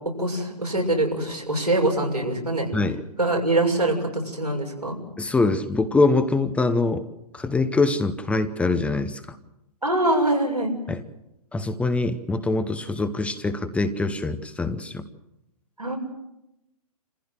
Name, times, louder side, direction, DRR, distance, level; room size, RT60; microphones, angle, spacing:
voice 1, 0.2-2.7 3.2-5.0 9.8-10.7 15.8-16.0, right 2 dB, 90° right, -1 dB, 6.7 m, -23 dB
voice 2, 2.7-3.0 5.2-7.1 7.3-9.4 10.9-11.0 11.5-15.1, left 3 dB, 5° left, 9 dB, 0.9 m, -24 dB
27.5 x 15.5 x 7.9 m, 0.89 s
figure-of-eight pair, 120°, 20 cm